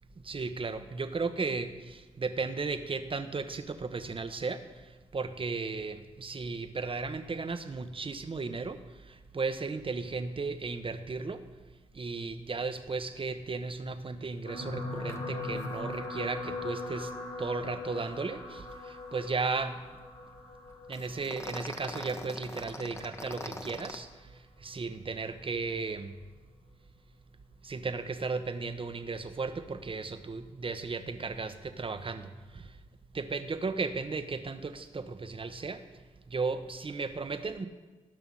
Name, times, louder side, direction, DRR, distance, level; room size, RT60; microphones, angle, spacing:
voice 1, 0.2-11.5 11.9-19.8 20.9-26.2 27.6-32.8 33.1-37.7, right 4 dB, 40° right, 9 dB, 1.1 m, -35 dB
sound 1, 14.4-22.9 23.7-23.9 24.2-24.3, left 3 dB, 65° left, 2.4 m, -40 dB
sound 2, 15.1-15.2 15.5-15.7 15.9-16.1 20.9-24.0, left 1 dB, 20° left, 1.3 m, -42 dB
16.5 x 6.0 x 5.6 m, 1.3 s
hypercardioid pair, 40°, 14 cm